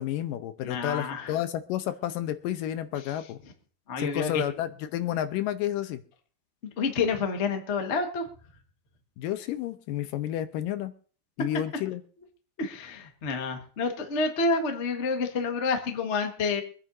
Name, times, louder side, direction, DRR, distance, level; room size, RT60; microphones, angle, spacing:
voice 1, 0.0-3.4 4.0-6.0 9.2-10.9 11.4-12.0, left 12 dB, 85° left, 10 dB, 2.4 m, -31 dB
voice 2, 0.6-1.3 3.9-4.4 6.8-8.3 12.6-16.6, left 4 dB, 65° left, 4 dB, 0.7 m, -28 dB
25.0 x 9.8 x 2.7 m, 0.43 s
omnidirectional pair, 4.0 m